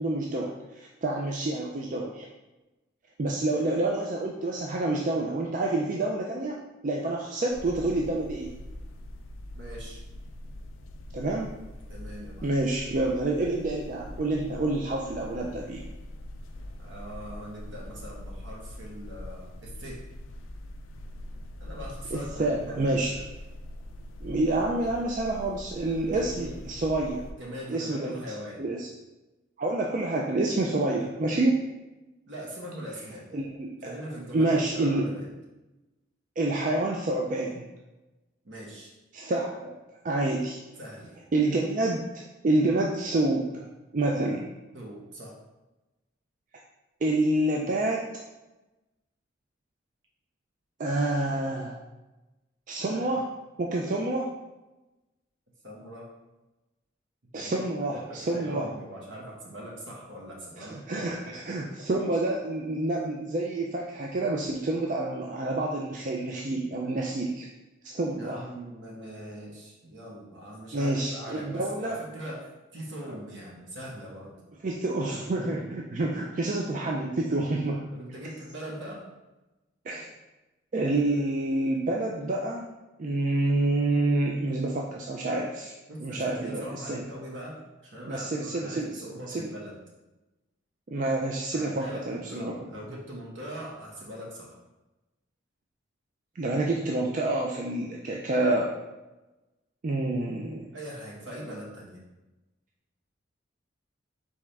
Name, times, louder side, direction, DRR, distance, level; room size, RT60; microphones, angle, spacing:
voice 1, 0.0-2.3 3.2-6.6 6.8-8.5 11.1-11.5 12.4-15.8 22.1-23.1 24.2-27.2 27.7-28.1 28.6-28.9 29.6-31.6 33.3-34.0 34.3-35.1 36.4-37.7 39.1-39.7 40.0-40.6 41.3-42.0 42.4-43.7 43.9-44.5 47.0-48.0 50.8-51.8 52.7-53.2 53.6-54.3 57.3-58.7 60.6-67.5 67.8-68.4 70.7-72.0 74.6-77.9 79.9-80.1 80.7-82.6 83.0-85.7 86.0-87.0 88.1-88.9 89.3-89.5 90.9-92.5 96.4-98.7 99.8-100.7, right 2 dB, 40° right, -1 dB, 0.3 m, -28 dB
sound 1, 7.5-27.3, left 1 dB, 85° left, 0.4 m, -42 dB
voice 2, 9.6-10.0 11.9-12.5 16.8-20.0 21.6-23.2 24.8-24.9 26.0-26.6 27.3-28.7 32.3-33.2 33.8-35.3 38.4-38.9 40.8-41.1 44.7-45.4 51.2-51.5 52.8-53.1 55.6-56.1 57.3-57.5 57.9-61.2 68.2-74.3 77.9-79.0 85.9-87.6 87.8-89.8 91.5-94.5 100.7-102.0, equal, 70° right, -3 dB, 1.2 m, -41 dB
4.1 x 3.5 x 3.3 m, 1.1 s
head